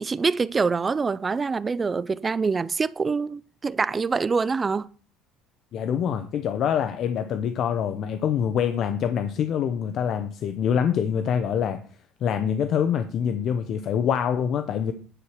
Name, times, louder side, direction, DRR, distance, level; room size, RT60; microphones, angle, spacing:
voice 1, 0.0-4.9, right 4 dB, 20° right, 0.3 m, -25 dB
voice 2, 5.7-11.8 12.2-14.9, left 8 dB, 50° left, 0.7 m, -25 dB
10.0 x 4.6 x 6.5 m
cardioid pair, 130°, 0 cm